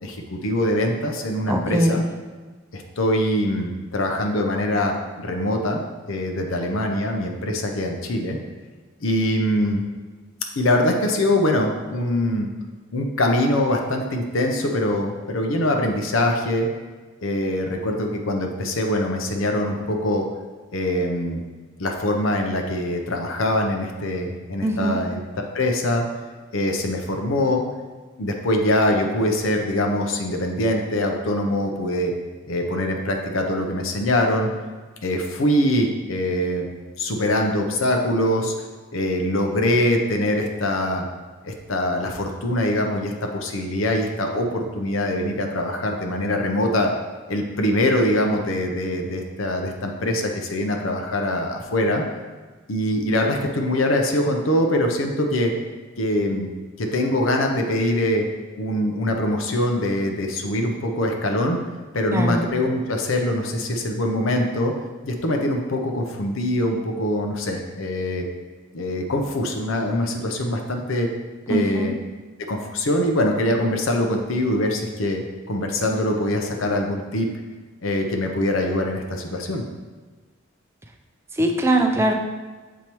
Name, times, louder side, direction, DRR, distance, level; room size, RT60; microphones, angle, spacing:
voice 1, 0.0-2.0 2.7-5.8 6.1-8.4 9.0-9.8 10.6-12.5 12.9-16.7 17.2-20.3 20.7-21.4 21.8-25.2 25.5-26.0 26.5-27.6 28.2-32.1 32.5-34.5 35.0-36.7 37.0-38.5 38.9-41.1 41.4-46.9 47.3-52.0 52.7-55.5 56.0-56.5 56.8-58.3 58.6-61.6 61.9-64.7 65.0-68.2 68.7-71.1 71.5-71.9 72.5-75.2 75.5-77.3 77.8-79.6, left 1 dB, 85° left, 3 dB, 0.7 m, -23 dB
voice 2, 1.5-2.0 24.6-25.0 62.1-62.4 71.5-71.9 81.3-82.1, right 1 dB, 15° right, 3 dB, 0.4 m, -21 dB
7.0 x 4.7 x 3.0 m, 1.3 s
head